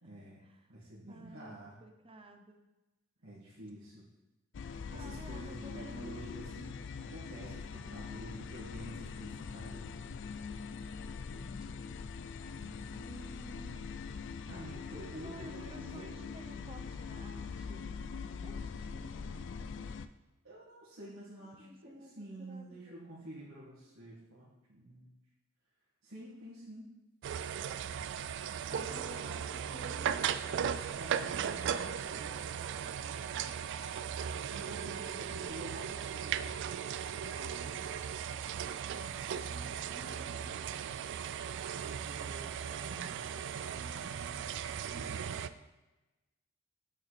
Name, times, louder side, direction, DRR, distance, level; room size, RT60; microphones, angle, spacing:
voice 1, 0.0-0.4 0.7-1.8 3.2-4.1 4.9-9.9 10.3-10.4 12.5-12.8 14.5-16.1 20.4-25.1 26.0-26.9 28.7-33.2 34.3-37.9 38.9-40.9 41.7-45.5, right 1 dB, 80° right, -9 dB, 2.2 m, -50 dB
voice 2, 1.1-2.6 4.9-6.2 11.2-11.9 12.9-13.9 15.1-18.0 18.4-19.5 21.6-22.9 28.7-30.2 33.3-33.9 37.1-38.1 39.9-40.6, right 1 dB, 25° right, 5 dB, 0.8 m, -53 dB
sound 1, 4.5-20.1, left 5 dB, 60° left, 0.4 m, -43 dB
sound 2, 27.2-45.5, right 8 dB, 60° right, 0.3 m, -37 dB
7.0 x 5.7 x 4.2 m, 1.0 s
head